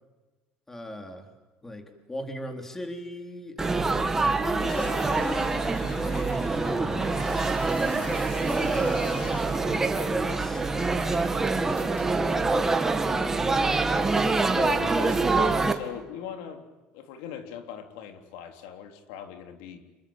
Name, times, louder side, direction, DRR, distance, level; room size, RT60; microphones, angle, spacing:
voice 1, 0.7-1.3 1.6-7.3 7.9-14.0, left 1 dB, 10° left, 5 dB, 3.8 m, -39 dB
Laughter / Chatter / Crowd, 3.6-15.7, right 3 dB, 15° right, 2.2 m, -25 dB
sound 1, 4.7-13.2, left 7 dB, 35° left, 2.2 m, -44 dB
voice 2, 14.3-16.7 16.9-19.8, left 8 dB, 90° left, 6 dB, 3.5 m, -39 dB
28.0 x 23.5 x 8.9 m, 1.1 s
cardioid pair, 145°, 3 cm